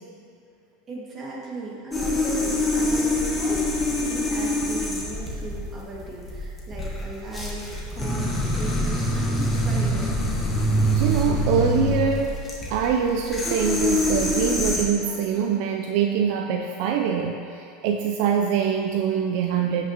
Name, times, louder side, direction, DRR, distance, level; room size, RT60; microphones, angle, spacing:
voice 1, 0.9-10.1, right 2 dB, 30° right, -4 dB, 1.9 m, -37 dB
sound 1, 1.9-14.8, left 1 dB, 15° left, 1.3 m, -25 dB
voice 2, 10.9-12.4 12.7-19.9, right 7 dB, 60° right, 3 dB, 0.4 m, -24 dB
12.5 x 5.9 x 2.9 m, 2.6 s
supercardioid pair, 135°, 0 cm